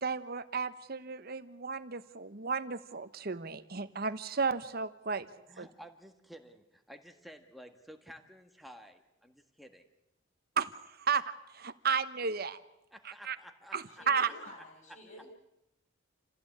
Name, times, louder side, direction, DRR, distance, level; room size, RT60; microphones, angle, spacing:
voice 1, 0.0-5.3 5.6-5.7 10.6-10.7 11.0-11.2 11.5-12.6 13.0-13.4 13.7-14.3, right 5 dB, 50° right, 12 dB, 1.1 m, -33 dB
voice 2, 5.5-9.8 12.9-14.3, equal, ahead, 5 dB, 1.7 m, -53 dB
voice 3, 13.9-15.3, left 1 dB, 40° left, 2 dB, 7.1 m, -51 dB
28.0 x 15.5 x 8.6 m, 0.92 s
head